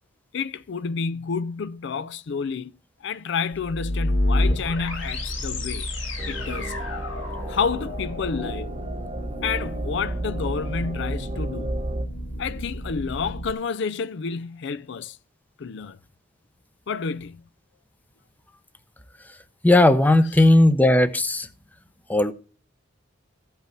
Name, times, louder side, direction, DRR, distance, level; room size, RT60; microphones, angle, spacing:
voice 1, 0.3-2.7 3.0-5.9 6.3-6.7 7.5-8.7 9.4-11.8 12.4-15.2 15.6-16.0 16.9-17.4, left 5 dB, 65° left, 0.4 m, -29 dB
sound 1, 3.5-13.5, left 1 dB, 80° left, 2.2 m, -30 dB
sound 2, 6.2-12.1, right 1 dB, 30° right, 0.8 m, -33 dB
voice 2, 19.6-21.5 22.1-22.3, left 1 dB, 10° left, 0.7 m, -16 dB
15.0 x 5.6 x 5.8 m
head